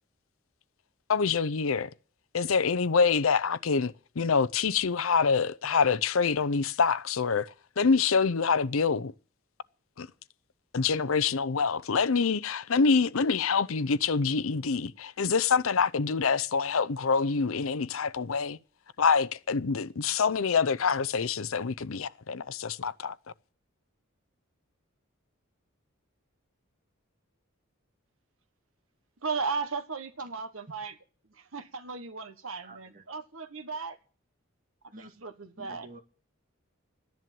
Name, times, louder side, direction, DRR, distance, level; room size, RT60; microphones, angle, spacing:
voice 1, 1.1-1.9 2.3-7.5 7.8-9.1 10.0-10.1 10.7-18.6 19.0-23.1, left 5 dB, 75° left, 0.6 m, -26 dB
voice 2, 29.2-31.0 31.3-34.0 35.0-35.9, right 4 dB, 75° right, 1.4 m, -36 dB
voice 3, 32.6-33.0 34.9-35.1 35.6-36.0, right 1 dB, 40° right, 1.8 m, -48 dB
14.0 x 10.5 x 7.7 m
head